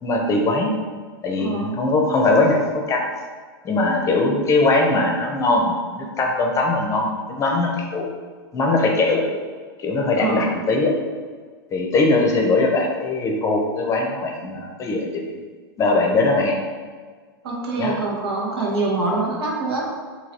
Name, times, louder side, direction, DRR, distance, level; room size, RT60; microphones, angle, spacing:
voice 1, 0.0-0.7 1.2-3.0 3.6-8.0 8.5-9.2 9.8-10.9 11.7-15.2 15.8-16.6 17.8-17.9 19.1-19.3, left 2 dB, 25° left, 1 dB, 0.6 m, -20 dB
voice 2, 1.4-1.8 4.2-4.3 10.2-10.5 14.5-14.6 17.4-19.9, right 3 dB, 85° right, -3 dB, 1.2 m, -25 dB
3.9 x 2.8 x 2.8 m, 1.5 s
hypercardioid pair, 120°, 13 cm